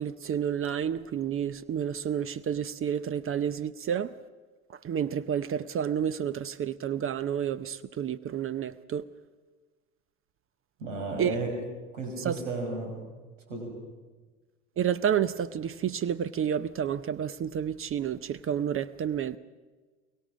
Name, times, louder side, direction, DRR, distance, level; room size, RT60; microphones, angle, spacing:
voice 1, 0.0-4.1 4.8-9.1 11.2-11.3 12.2-12.4 14.8-19.4, right 9 dB, 35° right, 0.8 m, -30 dB
voice 2, 10.8-11.5 11.9-13.0 13.5-13.7, right 3 dB, 85° right, 5.6 m, -33 dB
23.0 x 22.5 x 6.3 m
hypercardioid pair, 75°, 37 cm